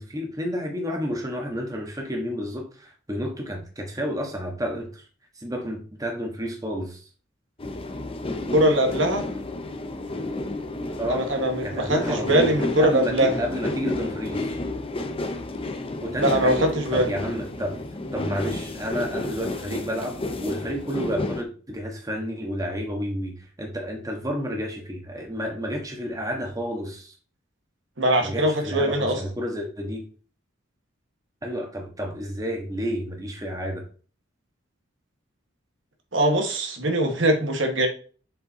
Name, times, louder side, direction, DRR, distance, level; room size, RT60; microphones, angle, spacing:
voice 1, 0.0-5.1 5.3-7.1 11.0-11.3 11.6-14.6 16.0-17.8 18.1-27.1 28.2-30.0 31.4-33.8, equal, 20° right, 1.5 m, -31 dB
sound 1, 7.6-21.4, left 2 dB, 30° left, 0.8 m, -31 dB
voice 2, 8.5-9.2 11.1-13.3 16.2-17.1 28.0-29.2 36.1-37.9, right 1 dB, 70° right, 1.6 m, -22 dB
7.3 x 5.2 x 2.9 m
head